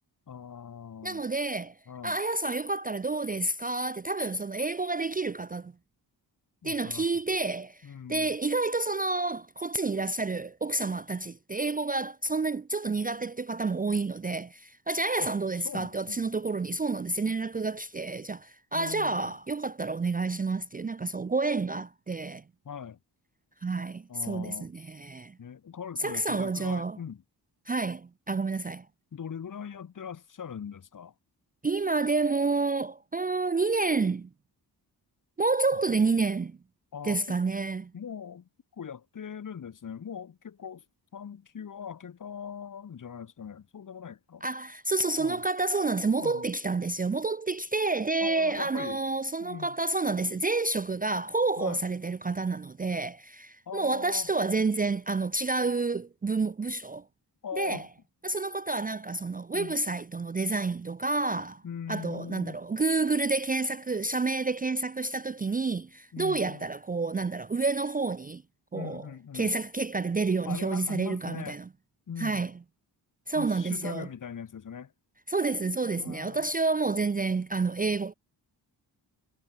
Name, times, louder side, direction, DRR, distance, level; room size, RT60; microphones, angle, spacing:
voice 1, 0.3-1.2 1.9-2.2 6.6-7.1 7.8-8.3 15.2-15.3 15.6-16.2 18.7-19.2 22.6-23.0 24.1-24.7 25.4-27.2 29.1-31.1 35.7-35.8 36.9-37.4 37.9-40.8 41.1-44.4 45.2-45.4 46.2-46.5 48.2-49.0 49.4-49.7 51.6-51.8 53.7-54.3 57.4-57.9 59.5-59.7 61.6-62.6 66.1-66.7 68.7-69.5 70.4-71.6 72.1-72.5 73.3-74.9 75.9-76.5, left 7 dB, 50° left, 1.6 m, -41 dB
voice 2, 1.0-1.8 2.0-5.7 6.6-22.4 23.6-25.4 26.0-27.0 27.7-28.9 31.6-34.3 35.4-36.6 37.0-37.9 44.4-57.1 57.6-57.9 58.2-61.6 61.9-68.4 68.7-69.1 69.3-71.7 72.2-72.5 73.3-74.1 75.3-78.1, right 3 dB, 20° right, 0.5 m, -29 dB
wide cardioid pair, 130°, 42 cm